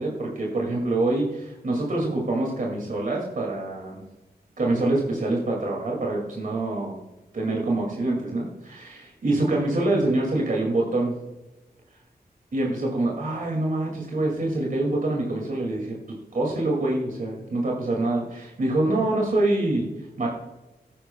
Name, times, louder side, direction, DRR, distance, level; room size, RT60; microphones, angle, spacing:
voice 1, 0.0-4.0 4.6-7.0 7.3-11.1 12.5-19.9 20.2-20.3, right 2 dB, 55° right, -1 dB, 2.3 m, -25 dB
15.0 x 10.0 x 2.3 m, 1.0 s
wide cardioid pair, 110°, 17 cm